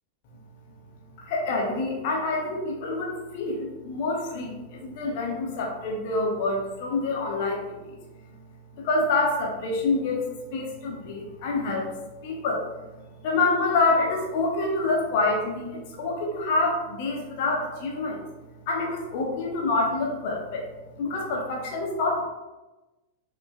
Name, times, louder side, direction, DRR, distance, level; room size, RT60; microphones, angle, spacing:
voice 1, 1.2-8.0 8.3-8.4 8.7-10.2 10.5-18.2 18.7-20.7 20.9-22.2, left 3 dB, 50° left, -1 dB, 0.6 m, -27 dB
2.5 x 2.2 x 2.2 m, 1.1 s
figure-of-eight pair, 90°, 0 cm